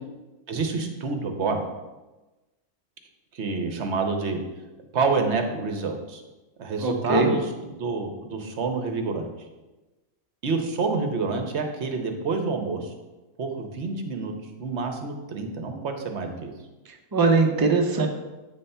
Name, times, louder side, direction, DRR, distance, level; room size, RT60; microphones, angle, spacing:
voice 1, 0.5-1.6 3.3-4.4 4.9-6.2 6.6-7.5 7.8-9.3 10.4-12.9 13.4-16.5, right 4 dB, 55° right, 4 dB, 1.0 m, -28 dB
voice 2, 6.8-7.4 17.1-18.1, right 3 dB, 35° right, 3 dB, 0.3 m, -21 dB
8.5 x 3.4 x 5.4 m, 1.1 s
omnidirectional pair, 1.6 m